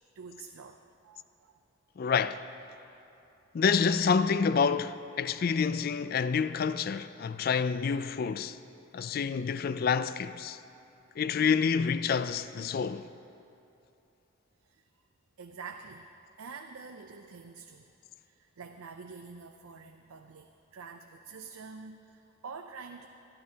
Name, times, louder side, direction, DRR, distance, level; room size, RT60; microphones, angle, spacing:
voice 1, 0.1-1.6 8.9-9.2 10.7-10.9 14.6-14.9 15.4-16.1 16.4-17.9 18.2-23.1, right 5 dB, 85° right, 0.5 m, -47 dB
voice 2, 2.0-2.4 3.5-8.6 8.9-10.6 11.2-13.1, left 6 dB, 45° left, 0.3 m, -28 dB
22.0 x 12.5 x 2.8 m
head